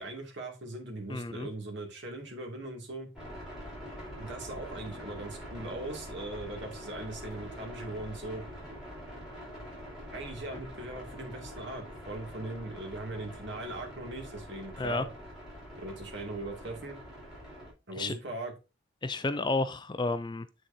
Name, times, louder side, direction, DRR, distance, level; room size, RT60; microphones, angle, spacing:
voice 1, 0.0-3.1 4.2-8.4 10.1-15.1 15.8-17.0 17.9-18.5, right 2 dB, 60° right, 2.6 m, -40 dB
voice 2, 1.1-1.5 14.8-15.0 18.0-18.1 19.0-20.5, left 3 dB, 20° left, 0.4 m, -31 dB
sound 1, 3.1-17.7, equal, 5° right, 4.9 m, -45 dB
8.0 x 6.3 x 2.8 m
head